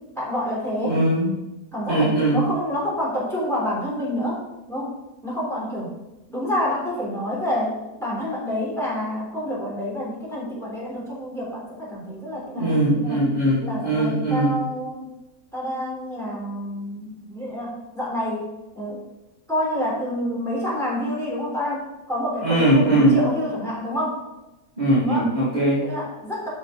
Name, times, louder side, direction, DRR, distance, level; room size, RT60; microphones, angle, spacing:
voice 1, 0.2-1.0 1.7-4.4 4.7-4.9 5.2-5.9 6.3-13.2 13.6-15.1 15.5-19.0 19.5-24.2 25.0-25.3 25.8-26.5, left 1 dB, ahead, -6 dB, 3.5 m, -28 dB
voice 2, 0.8-1.3 1.9-2.4 12.6-14.6 22.4-23.2 24.8-25.9, right 1 dB, 25° right, -10 dB, 2.3 m, -20 dB
12.5 x 5.5 x 3.8 m, 0.98 s
omnidirectional pair, 1.7 m